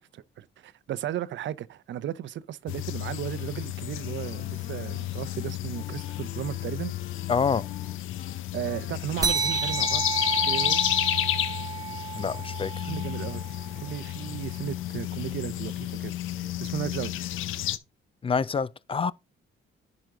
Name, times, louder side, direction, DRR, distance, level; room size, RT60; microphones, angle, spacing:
voice 1, 0.1-6.9 8.5-10.0 10.4-10.8 12.8-17.1, right 11 dB, 70° right, 0.6 m, -35 dB
sound 1, 2.7-17.8, left 13 dB, 85° left, 0.7 m, -31 dB
Wind instrument woodwind instrument, 3.2-10.7, left 8 dB, 60° left, 1.3 m, -49 dB
voice 2, 7.3-7.7 12.2-12.7 18.2-19.1, left 5 dB, 30° left, 0.4 m, -26 dB
sound 2, 9.2-14.1, right 6 dB, 20° right, 0.9 m, -31 dB
10.5 x 5.1 x 3.6 m
cardioid pair, 90°, 20 cm